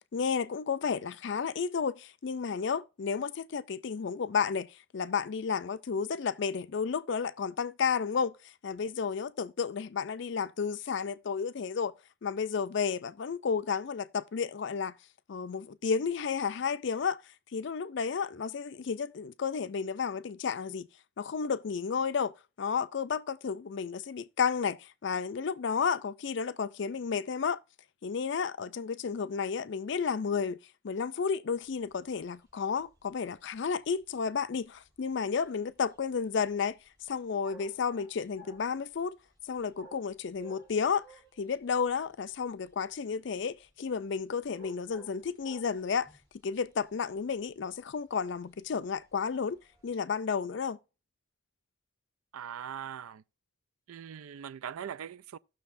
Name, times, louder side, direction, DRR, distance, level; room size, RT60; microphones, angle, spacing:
voice 1, 0.1-11.9 12.2-15.0 15.3-17.2 17.5-20.9 21.2-27.6 28.0-30.6 30.8-36.8 37.1-39.2 39.5-41.0 41.4-46.1 46.4-50.8, left 6 dB, 55° left, 0.4 m, -32 dB
sound 1, 31.6-49.9, right 1 dB, 15° right, 1.3 m, -58 dB
voice 2, 52.3-53.2 53.9-55.4, right 8 dB, 85° right, 0.4 m, -41 dB
17.0 x 6.2 x 2.6 m
head